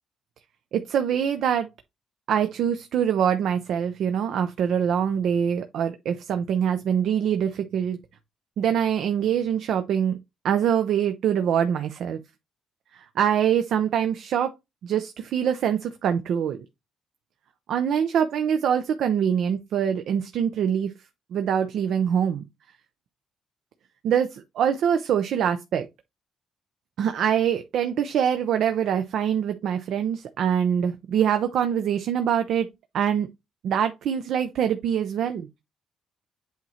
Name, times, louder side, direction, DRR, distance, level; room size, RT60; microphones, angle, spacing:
voice 1, 0.7-1.7 2.3-8.0 8.6-10.2 10.4-12.2 12.9-14.5 14.8-16.6 17.7-20.9 21.3-22.5 24.0-25.9 27.0-32.7 32.9-33.3 33.6-35.5, right 8 dB, 75° right, 0.7 m, -24 dB
8.1 x 3.1 x 4.2 m
cardioid pair, 90°, 0 cm